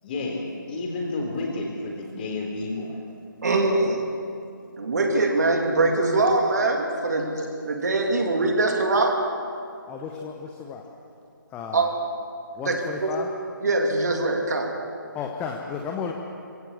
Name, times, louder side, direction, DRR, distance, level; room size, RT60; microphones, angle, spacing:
voice 1, 0.0-2.9, left 2 dB, 25° left, 0 dB, 3.7 m, -30 dB
voice 2, 3.4-4.0 4.8-9.2 11.7-11.9 12.6-13.1 13.6-14.7, right 2 dB, 55° right, 2 dB, 2.8 m, -23 dB
voice 3, 9.9-10.8 11.5-11.8 12.5-13.3 15.1-16.1, left 6 dB, 10° left, 2 dB, 0.8 m, -33 dB
21.5 x 16.5 x 7.3 m, 2.5 s
figure-of-eight pair, 150°, 11 cm